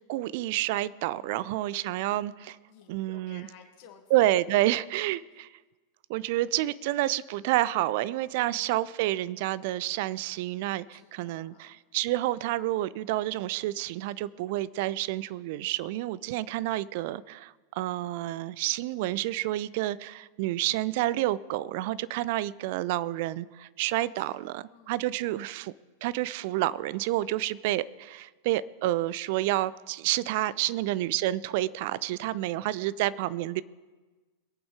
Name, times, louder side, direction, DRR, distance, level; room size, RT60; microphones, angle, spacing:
voice 1, 0.1-2.6 2.9-3.5 4.1-5.5 6.1-25.7 26.0-33.6, right 15 dB, 50° right, 19 dB, 0.4 m, -29 dB
voice 2, 1.2-1.9 2.7-4.1 4.6-4.7 4.9-5.4 8.5-8.8 10.9-11.8 24.1-24.9 30.6-30.8, left 8 dB, 45° left, 4 dB, 2.0 m, -56 dB
22.0 x 8.7 x 4.9 m, 1.3 s
figure-of-eight pair, 90°, 0 cm